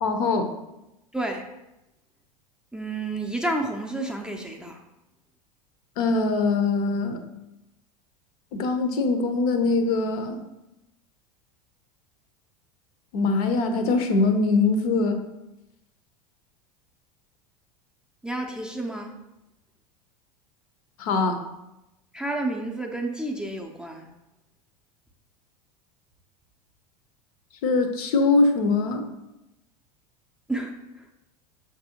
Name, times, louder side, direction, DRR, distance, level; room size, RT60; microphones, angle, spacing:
voice 1, 0.0-0.5 6.0-7.2 8.5-10.4 13.1-15.2 21.0-21.4 27.6-29.0, left 3 dB, 65° left, 6 dB, 0.6 m, -22 dB
voice 2, 1.1-1.4 2.7-4.8 18.2-19.1 22.1-24.1 30.5-31.1, right 2 dB, 5° right, 1 dB, 0.4 m, -30 dB
6.0 x 2.6 x 2.8 m, 0.94 s
hypercardioid pair, 85°, 20 cm